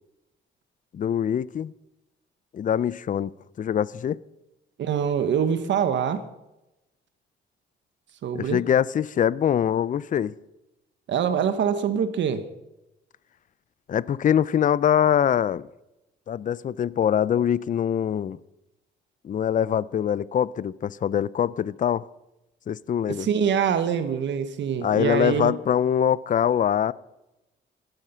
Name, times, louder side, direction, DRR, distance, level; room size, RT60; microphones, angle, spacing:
voice 1, 0.9-1.7 2.5-3.3 3.6-4.2 8.3-10.3 13.9-15.7 16.3-18.4 19.2-22.1 22.7-23.3 24.8-26.9, left 9 dB, 40° left, 0.5 m, -23 dB
voice 2, 4.8-6.3 8.2-8.6 11.1-12.4 23.1-25.5, right 7 dB, 70° right, 1.3 m, -24 dB
16.5 x 12.5 x 5.7 m
cardioid pair, 90°, 20 cm